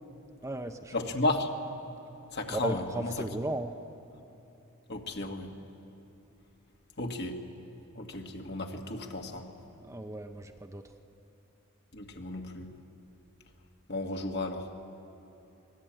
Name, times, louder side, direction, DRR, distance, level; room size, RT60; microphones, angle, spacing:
voice 1, 0.4-1.1 2.5-3.7 9.7-10.8, right 1 dB, 15° right, 6 dB, 0.8 m, -36 dB
voice 2, 0.9-1.5 2.3-3.3 4.9-5.5 7.0-7.4 8.0-9.5 11.9-12.7 13.9-14.7, left 2 dB, 55° left, 3 dB, 1.9 m, -33 dB
26.0 x 20.0 x 8.9 m, 2.8 s
head